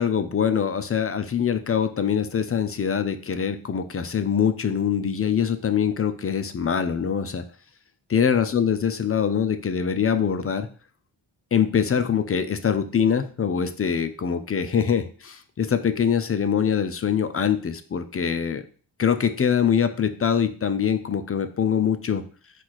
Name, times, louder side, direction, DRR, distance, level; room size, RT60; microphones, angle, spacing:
voice 1, 0.0-7.4 8.1-10.7 11.5-18.7 19.0-22.2, left 7 dB, 30° left, 9 dB, 0.5 m, -23 dB
4.4 x 2.5 x 4.2 m, 0.40 s
cardioid pair, 55°, 46 cm